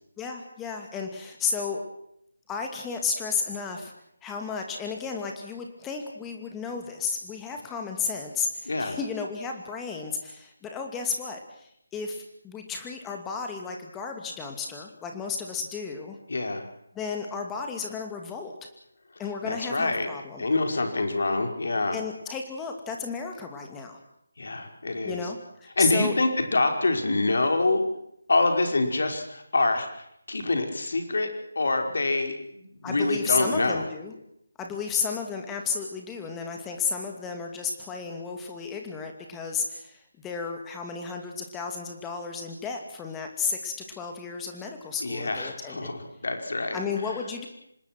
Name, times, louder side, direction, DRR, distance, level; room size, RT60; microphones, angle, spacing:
voice 1, 0.2-1.8 2.5-3.9 4.2-16.2 16.9-18.5 19.2-20.4 21.9-24.0 25.0-26.1 32.8-34.1 34.6-45.9 46.7-47.5, left 5 dB, 10° left, 3 dB, 2.5 m, -33 dB
voice 2, 8.7-9.0 16.3-16.6 19.4-20.1 20.4-22.0 24.4-25.2 25.8-27.8 28.3-29.9 30.3-31.3 31.5-33.8 45.0-46.8, left 2 dB, 60° left, 5 dB, 5.2 m, -26 dB
26.5 x 20.5 x 6.1 m, 0.74 s
figure-of-eight pair, 155°, 0 cm